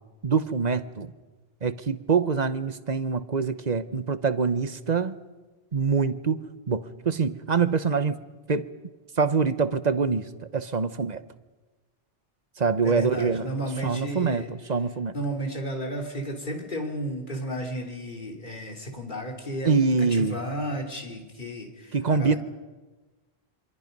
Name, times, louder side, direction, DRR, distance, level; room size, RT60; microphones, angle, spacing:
voice 1, 0.2-1.1 1.6-5.2 5.7-6.4 6.7-8.2 8.5-8.7 9.2-10.3 10.5-11.2 12.6-13.5 13.8-15.1 19.6-20.4 21.9-22.4, right 5 dB, 40° right, 12 dB, 1.1 m, -25 dB
voice 2, 12.8-14.5 15.1-22.4, right 1 dB, 50° left, 2 dB, 3.4 m, -33 dB
27.5 x 25.0 x 5.4 m, 1.2 s
omnidirectional pair, 1.1 m